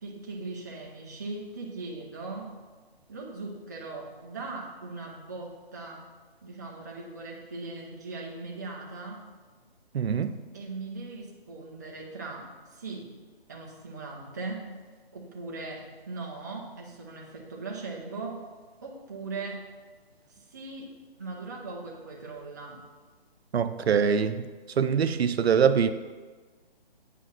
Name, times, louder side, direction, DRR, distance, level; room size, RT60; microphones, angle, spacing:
voice 1, 0.0-2.5 3.1-6.1 6.4-9.3 10.5-13.1 13.5-14.7 15.1-18.4 18.8-19.7 20.5-20.9 21.2-22.8, right 3 dB, 20° right, -2 dB, 0.7 m, -39 dB
voice 2, 9.9-10.3 23.5-24.4 24.8-25.9, right 7 dB, 90° right, 11 dB, 0.6 m, -23 dB
8.4 x 5.0 x 5.6 m, 1.4 s
hypercardioid pair, 170°, 30 cm